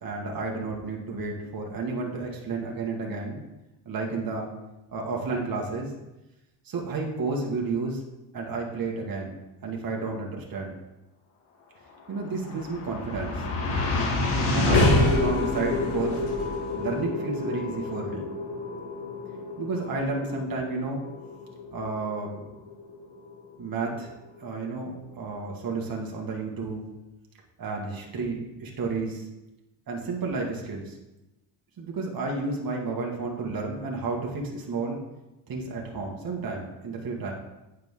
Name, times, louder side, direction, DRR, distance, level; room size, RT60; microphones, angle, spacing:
voice 1, 0.0-3.4 3.9-4.5 4.9-5.9 6.6-8.0 8.3-9.4 9.6-10.8 12.1-13.4 14.5-16.2 16.7-18.3 19.6-21.0 21.7-22.4 23.6-24.1 24.4-26.9 27.6-29.3 29.9-31.0 31.8-35.0 35.5-37.3, right 3 dB, 45° right, -1 dB, 1.9 m, -31 dB
sound 1, 12.2-24.5, left 2 dB, 70° left, 2.5 m, -28 dB
9.0 x 6.5 x 3.8 m, 1.0 s
cardioid pair, 100°, 50 cm